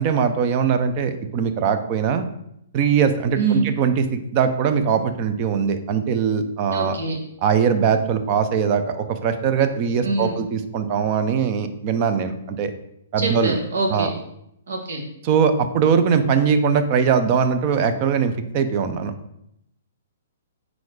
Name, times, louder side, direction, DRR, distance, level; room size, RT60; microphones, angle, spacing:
voice 1, 0.0-2.2 2.7-7.0 7.4-12.7 13.1-13.6 13.9-14.1 15.2-19.1, right 6 dB, 35° right, 9 dB, 0.6 m, -21 dB
voice 2, 3.3-3.6 6.7-7.2 10.0-10.3 13.2-14.1 14.7-15.0, right 3 dB, 75° right, 2 dB, 1.4 m, -24 dB
4.7 x 4.2 x 4.8 m, 0.78 s
hypercardioid pair, 145°, 0 cm